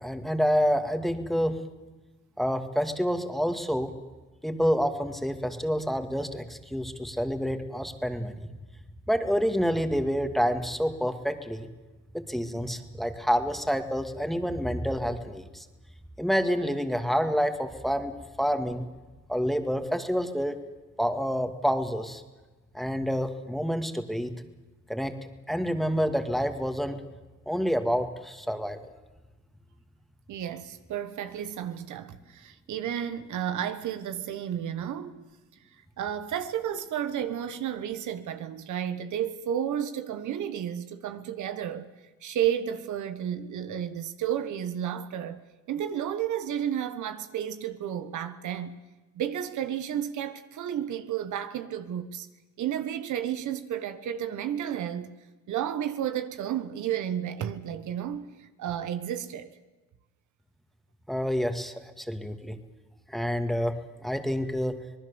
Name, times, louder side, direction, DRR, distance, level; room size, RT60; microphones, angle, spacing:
voice 1, 0.0-1.6 2.4-3.9 4.4-8.5 9.1-11.7 12.1-15.7 16.2-18.1 18.4-18.9 19.3-20.6 21.0-22.2 22.7-24.3 24.9-25.1 25.5-27.0 27.5-28.8 61.1-62.6 63.1-64.8, equal, ahead, 2.2 m, -28 dB
voice 2, 30.3-35.2 36.0-41.9 42.2-45.4 45.7-48.8 49.1-52.3 52.6-55.1 55.5-59.5, right 10 dB, 75° right, 1.4 m, -32 dB
26.0 x 19.5 x 7.1 m
cardioid pair, 90°, 30 cm